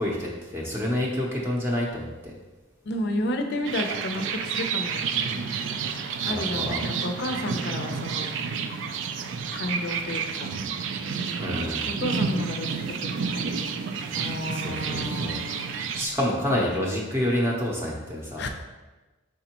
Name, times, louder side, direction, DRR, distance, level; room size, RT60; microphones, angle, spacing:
voice 1, 0.0-2.3 6.3-6.8 11.4-11.9 14.5-15.4 15.9-18.4, left 1 dB, 15° right, -3 dB, 0.6 m, -28 dB
voice 2, 2.8-5.1 6.3-8.3 9.5-10.5 11.9-13.7 14.1-15.7 18.4-18.5, left 1 dB, 60° left, 6 dB, 0.5 m, -32 dB
sound 1, 3.6-16.1, right 6 dB, 70° right, 0.3 m, -30 dB
5.1 x 3.6 x 2.9 m, 1.2 s
head